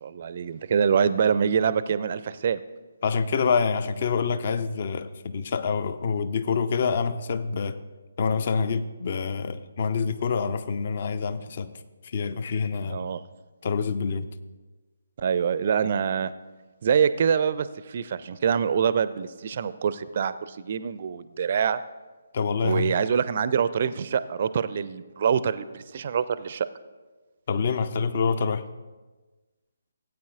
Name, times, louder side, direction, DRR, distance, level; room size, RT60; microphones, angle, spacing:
voice 1, 0.0-2.6 12.9-13.2 15.2-16.3 16.8-21.8 22.6-26.7, right 7 dB, 40° right, 0.4 m, -25 dB
voice 2, 3.0-7.8 8.2-11.7 12.0-13.1 13.6-14.3 22.3-22.9 27.5-28.7, left 5 dB, 40° left, 0.5 m, -26 dB
17.0 x 8.7 x 2.4 m
figure-of-eight pair, 140°, 0 cm